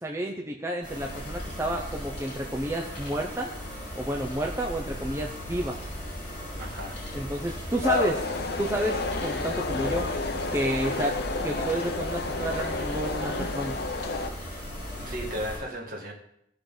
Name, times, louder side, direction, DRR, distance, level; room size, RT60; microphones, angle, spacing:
voice 1, 0.0-3.5 3.9-5.8 7.1-8.3 8.6-10.1 10.5-11.2 11.4-13.8, right 1 dB, 15° right, 0 dB, 0.7 m, -30 dB
sound 1, 0.8-15.6, equal, 40° left, 5.5 m, -37 dB
voice 2, 6.6-7.0 15.0-16.1, equal, 50° right, 0 dB, 2.0 m, -35 dB
sound 2, 7.8-14.3, left 3 dB, 60° left, 0.7 m, -31 dB
17.5 x 6.6 x 4.0 m, 0.74 s
head